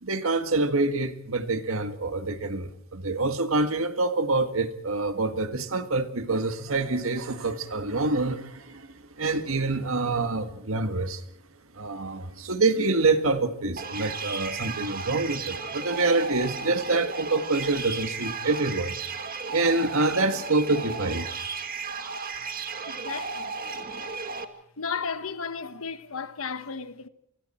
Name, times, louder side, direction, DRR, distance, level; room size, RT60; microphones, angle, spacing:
voice 1, 0.0-11.2 11.7-19.0 19.5-21.3, right 3 dB, 80° right, 1.8 m, -26 dB
sound 1, 13.8-24.4, right 4 dB, 45° right, 1.8 m, -34 dB
voice 2, 22.9-23.5 24.8-27.1, left 5 dB, 85° left, 1.3 m, -34 dB
30.0 x 23.5 x 4.4 m
head